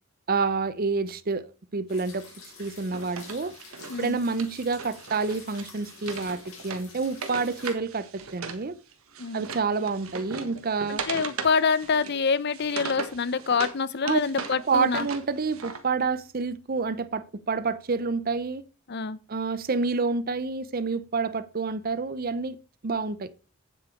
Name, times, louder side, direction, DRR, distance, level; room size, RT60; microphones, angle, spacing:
voice 1, 0.3-2.3 2.6-3.5 4.0-8.8 9.3-11.0 14.0-14.2 14.7-18.6 19.3-22.6 22.8-23.3, right 4 dB, 45° right, 0.6 m, -28 dB
sound 1, 1.9-7.7, left 5 dB, 90° left, 4.3 m, -49 dB
Wood, 2.6-8.6 8.9-13.8 14.1-15.8, right 5 dB, 85° right, 1.5 m, -38 dB
voice 2, 10.9-15.1 18.9-19.2, left 5 dB, 50° left, 0.6 m, -26 dB
8.8 x 7.7 x 4.5 m
head